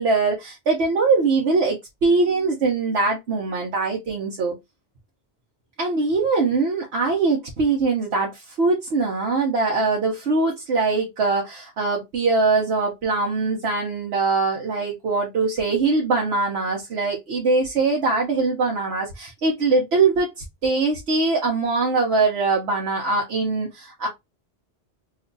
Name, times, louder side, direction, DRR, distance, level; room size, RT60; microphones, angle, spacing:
voice 1, 0.0-4.5 5.8-24.1, right 3 dB, 80° right, 1.1 m, -22 dB
3.1 x 2.2 x 3.8 m
omnidirectional pair, 1.1 m